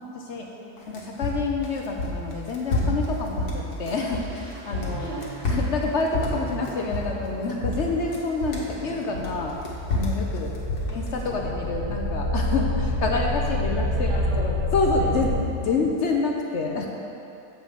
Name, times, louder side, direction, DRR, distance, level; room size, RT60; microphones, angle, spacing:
voice 1, 0.0-0.5 0.9-5.1 5.5-9.6 9.9-10.5 10.9-14.1 14.4-15.3 15.6-16.9, left 3 dB, 60° left, 1 dB, 0.8 m, -27 dB
voice 2, 0.5-1.0 4.9-5.5 10.9-11.4 13.7-14.6 14.9-15.9, equal, 35° right, -8 dB, 1.6 m, -41 dB
sound 1, 0.8-4.4 4.7-7.3 7.6-8.7 9.1-11.3, left 2 dB, 80° left, 1.9 m, -28 dB
sound 2, 4.0-9.8 10.1-10.4, right 5 dB, 80° right, 1.3 m, -43 dB
sound 3, 9.2-15.3, left 1 dB, 25° left, 0.9 m, -27 dB
7.4 x 5.5 x 7.1 m, 2.7 s
omnidirectional pair, 1.6 m